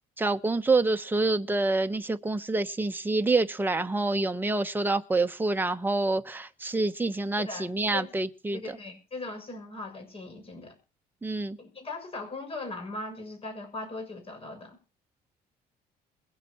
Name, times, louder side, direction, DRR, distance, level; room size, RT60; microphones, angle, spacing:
voice 1, 0.2-8.8 11.2-11.6, right 2 dB, 10° right, 1.0 m, -27 dB
voice 2, 8.5-10.7 11.6-14.8, left 2 dB, 35° left, 6.7 m, -39 dB
22.0 x 7.5 x 4.4 m
cardioid pair, 110°, 17 cm